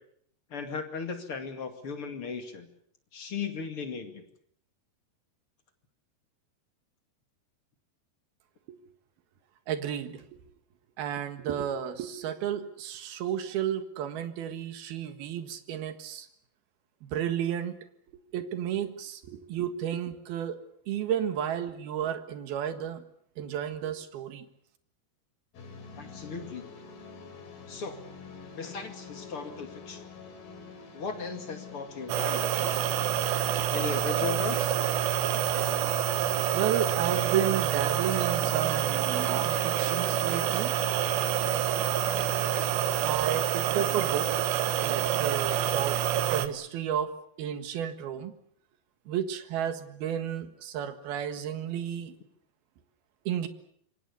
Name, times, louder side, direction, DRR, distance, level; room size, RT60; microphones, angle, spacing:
voice 1, 0.5-2.7 3.1-4.2 26.0-26.7 27.7-28.0 28.5-30.0 30.9-32.9 33.7-34.8, left 5 dB, 40° left, 6 dB, 2.5 m, -37 dB
voice 2, 9.7-10.3 11.0-16.3 17.0-17.7 18.3-20.6 20.9-23.0 23.4-24.5 33.8-34.0 36.5-40.8 43.0-44.5 44.8-48.3 49.1-52.2 53.3-53.5, right 9 dB, 70° right, 9 dB, 3.4 m, -32 dB
sound 1, 25.5-43.0, left 5 dB, 60° left, 5.3 m, -46 dB
sound 2, 32.1-46.5, right 11 dB, 85° right, 3.5 m, -27 dB
27.5 x 24.0 x 7.0 m, 0.67 s
omnidirectional pair, 4.8 m